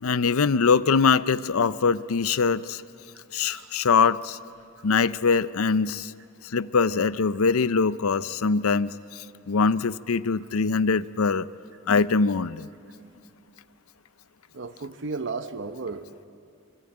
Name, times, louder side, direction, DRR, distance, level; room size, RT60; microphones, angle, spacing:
voice 1, 0.0-2.8 3.3-4.4 4.8-6.1 6.4-11.5 11.9-12.7, left 5 dB, 80° left, 16 dB, 0.6 m, -23 dB
voice 2, 3.4-3.8 4.8-4.9 14.5-16.3, right 4 dB, 55° right, 9 dB, 0.9 m, -35 dB
24.5 x 24.5 x 8.8 m, 2.5 s
head